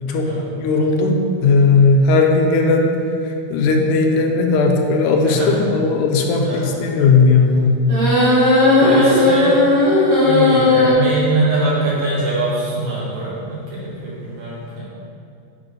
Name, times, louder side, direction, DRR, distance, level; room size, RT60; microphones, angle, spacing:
voice 1, 0.6-3.0 3.2-7.8, left 3 dB, 85° left, 2 dB, 2.1 m, -16 dB
voice 2, 5.2-5.6 6.4-6.7 8.8-9.8 10.2-14.8, right 2 dB, 90° right, -7 dB, 3.4 m, -22 dB
sound 1, 7.9-10.9, left 2 dB, 45° right, 1.1 m, -14 dB
7.4 x 3.7 x 5.2 m, 2.6 s
omnidirectional pair, 3.7 m